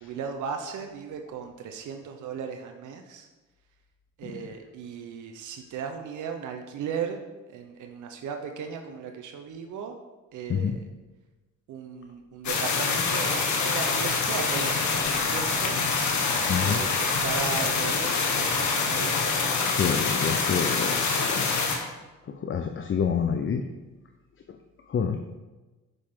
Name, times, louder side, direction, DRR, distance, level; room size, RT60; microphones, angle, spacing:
voice 1, 0.0-3.3 4.2-7.3 7.5-10.0 10.3-10.9 11.7-15.8 16.6-19.4, right 6 dB, 80° right, 4 dB, 0.9 m, -36 dB
sound 1, 12.4-21.8, left 4 dB, 75° left, 1.7 m, -25 dB
voice 2, 16.5-16.8 19.7-21.5 22.4-23.6 24.9-25.2, left 7 dB, 40° left, 6 dB, 0.7 m, -27 dB
10.0 x 6.8 x 3.8 m, 1.2 s
cardioid pair, 90°, 30 cm